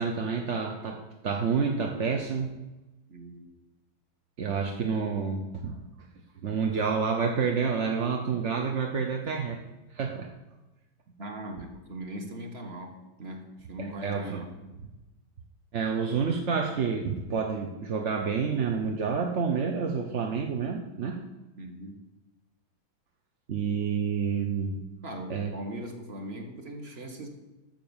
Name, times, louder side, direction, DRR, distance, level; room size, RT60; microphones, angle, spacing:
voice 1, 0.0-2.5 4.4-5.8 6.4-9.6 9.9-10.3 13.8-14.4 15.7-21.2 23.5-24.8 25.3-25.5, right 5 dB, 50° right, 2 dB, 0.9 m, -29 dB
voice 2, 3.1-3.5 11.2-14.5 21.6-22.0 25.0-27.3, right 1 dB, 30° right, 4 dB, 1.7 m, -40 dB
12.0 x 7.1 x 7.2 m, 1.1 s
omnidirectional pair, 2.2 m